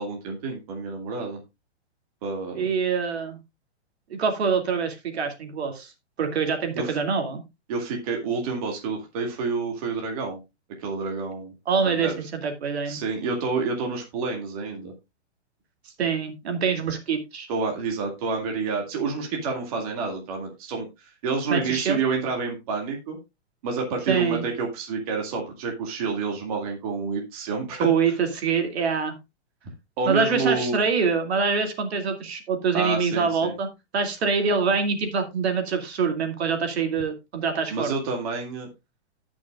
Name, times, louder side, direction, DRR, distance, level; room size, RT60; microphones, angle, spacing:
voice 1, 0.0-1.4 2.2-2.7 6.8-7.0 7.7-10.4 10.8-11.5 11.8-12.2 12.9-14.9 17.5-23.2 23.6-28.1 30.0-30.8 32.7-33.5 37.7-38.7, right 4 dB, 30° right, 1 dB, 2.3 m, -29 dB
voice 2, 2.5-3.4 4.1-5.9 6.2-7.4 11.7-13.0 16.0-17.5 21.5-22.0 24.1-24.4 27.8-29.2 30.1-33.7 33.9-37.9, right 5 dB, 65° right, 5 dB, 2.6 m, -25 dB
18.0 x 6.2 x 2.4 m, 0.23 s
hypercardioid pair, 180°, 34 cm